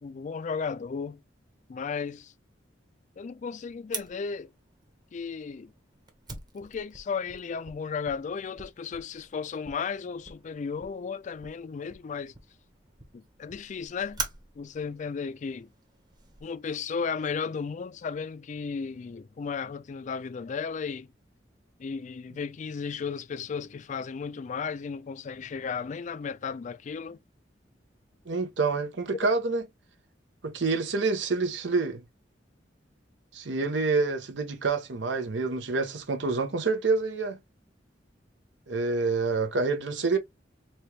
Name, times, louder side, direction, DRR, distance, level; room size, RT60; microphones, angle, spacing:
voice 1, 0.0-1.2 1.7-2.3 3.2-4.5 5.1-5.7 6.5-12.3 13.1-14.2 14.6-15.7 16.4-21.1 21.8-27.2, left 5 dB, 40° left, 0.3 m, -34 dB
Fire, 3.9-16.4, right 4 dB, 25° right, 0.9 m, -44 dB
voice 2, 28.3-29.6 30.4-32.0 33.3-37.4 38.7-40.2, right 3 dB, 85° right, 0.8 m, -27 dB
4.2 x 2.4 x 3.2 m
head